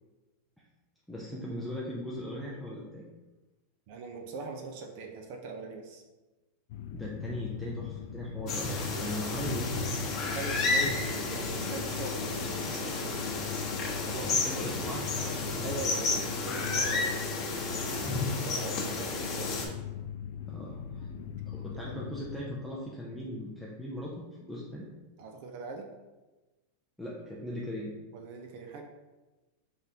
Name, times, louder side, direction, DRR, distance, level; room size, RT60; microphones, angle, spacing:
voice 1, 1.1-3.1 6.9-8.7 9.0-9.7 10.9-11.0 11.6-11.8 14.0-15.4 20.5-21.1 21.5-24.9 27.0-28.0, equal, ahead, -6 dB, 0.5 m, -39 dB
voice 2, 3.9-6.0 8.8-9.5 10.3-13.1 14.1-14.8 15.6-17.4 18.0-19.7 21.7-21.8 25.2-25.9 28.1-28.8, right 4 dB, 55° right, 3 dB, 0.6 m, -42 dB
sound 1, 6.7-22.4, left 8 dB, 65° left, 0.3 m, -40 dB
sound 2, 8.5-19.7, left 3 dB, 35° left, 1.0 m, -32 dB
3.7 x 3.5 x 2.8 m, 1.1 s
supercardioid pair, 140°, 0 cm